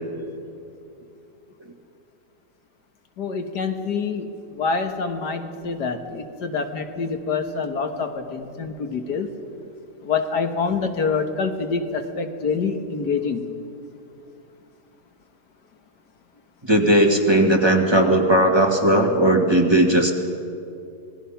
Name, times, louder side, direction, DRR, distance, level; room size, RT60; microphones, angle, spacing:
voice 1, 3.2-9.3 10.0-13.5, left 5 dB, 75° left, 6 dB, 1.9 m, -26 dB
voice 2, 16.7-20.1, right 1 dB, 15° right, 2 dB, 1.8 m, -17 dB
27.0 x 20.0 x 5.8 m, 2.6 s
omnidirectional pair, 1.8 m